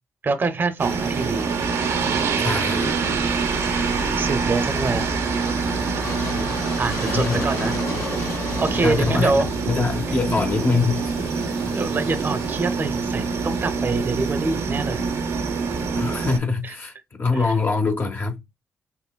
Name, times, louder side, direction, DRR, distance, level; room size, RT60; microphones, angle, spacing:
voice 1, 0.2-1.7 2.0-2.6 4.0-5.1 6.0-6.1 6.8-7.7 8.6-9.5 10.1-10.2 11.4-15.0 16.6-16.7 17.3-17.5, right 3 dB, 40° right, 0.6 m, -26 dB
sound 1, 0.8-16.4, right 5 dB, 80° right, 1.0 m, -25 dB
sound 2, 1.0-15.8, left 3 dB, 85° left, 1.5 m, -43 dB
voice 2, 2.4-2.9 7.1-7.5 8.8-11.0 15.9-18.4, left 4 dB, 40° left, 0.7 m, -24 dB
sound 3, 2.6-10.7, left 4 dB, 65° left, 0.9 m, -35 dB
5.6 x 2.1 x 2.2 m
cardioid pair, 65°, 5 cm